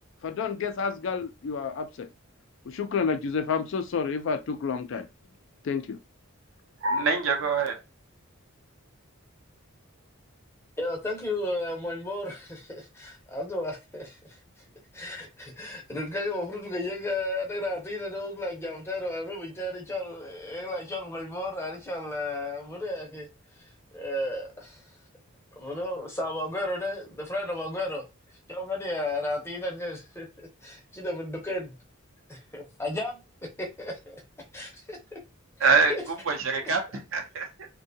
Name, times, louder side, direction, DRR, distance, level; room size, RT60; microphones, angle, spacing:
voice 1, 0.2-2.1 2.7-5.1 5.6-6.0, left 5 dB, 60° left, 0.4 m, -29 dB
voice 2, 6.8-7.8 35.6-35.9 36.3-37.7, right 4 dB, 65° right, 0.7 m, -25 dB
voice 3, 10.8-14.4 14.9-23.3 23.6-24.8 25.6-28.0 28.5-31.8 32.3-33.2 33.6-34.2 34.5-35.2 35.6-36.0, left 1 dB, 10° left, 0.6 m, -33 dB
2.6 x 2.2 x 2.6 m
head